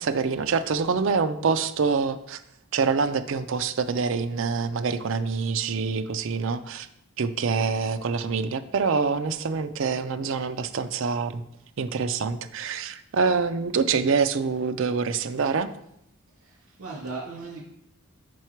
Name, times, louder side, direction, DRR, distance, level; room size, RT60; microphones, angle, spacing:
voice 1, 0.0-2.4 2.7-6.9 7.2-11.4 11.8-15.7, right 5 dB, 60° right, 10 dB, 0.4 m, -26 dB
voice 2, 16.4-17.6, right 3 dB, 80° right, -2 dB, 2.3 m, -37 dB
5.6 x 4.6 x 4.5 m, 0.79 s
head